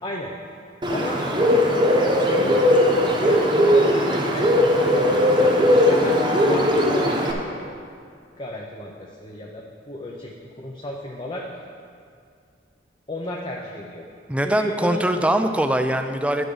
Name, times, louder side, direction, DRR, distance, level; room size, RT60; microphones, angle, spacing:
voice 1, 0.0-0.3 0.9-1.2 1.7-2.6 3.1-4.5 5.1-7.7 8.4-11.5 13.1-14.0 14.4-15.1, left 1 dB, 25° left, -1 dB, 0.7 m, -33 dB
Bird, 0.8-7.3, left 1 dB, 25° right, 1.0 m, -19 dB
voice 2, 14.3-16.5, right 1 dB, 5° right, 7 dB, 0.4 m, -22 dB
11.0 x 6.2 x 5.0 m, 2.2 s
head